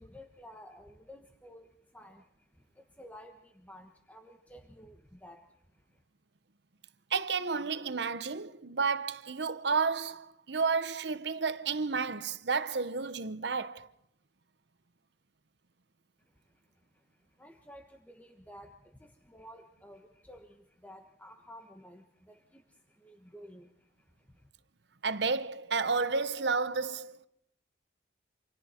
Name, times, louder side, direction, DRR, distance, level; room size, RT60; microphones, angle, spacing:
voice 1, 0.0-6.0 16.2-24.5, equal, 10° left, 1.3 m, -53 dB
voice 2, 7.1-13.9 25.0-27.2, right 4 dB, 70° right, 0.9 m, -31 dB
29.0 x 26.5 x 4.4 m
head